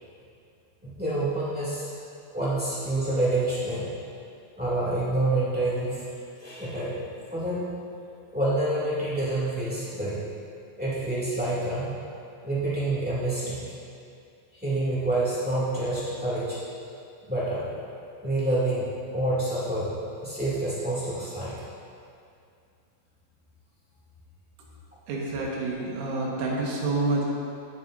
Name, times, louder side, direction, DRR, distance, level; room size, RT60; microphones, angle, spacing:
voice 1, 0.8-1.9 2.3-3.9 4.6-6.1 6.4-7.0 7.3-7.6 8.3-10.2 10.8-11.9 12.4-13.6 14.6-16.6 17.3-17.6 18.2-21.6, right 2 dB, 5° right, -9 dB, 0.7 m, -27 dB
voice 2, 25.1-27.2, right 2 dB, 90° right, -4 dB, 4.0 m, -28 dB
16.5 x 9.1 x 2.7 m, 2.4 s
omnidirectional pair, 5.3 m